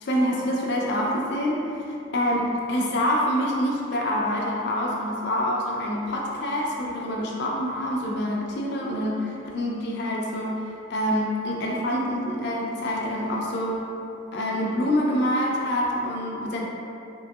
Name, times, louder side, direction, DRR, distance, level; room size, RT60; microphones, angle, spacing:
voice 1, 0.0-13.8 14.3-16.6, equal, 55° left, -2 dB, 0.4 m, -26 dB
2.9 x 2.6 x 2.3 m, 2.7 s
head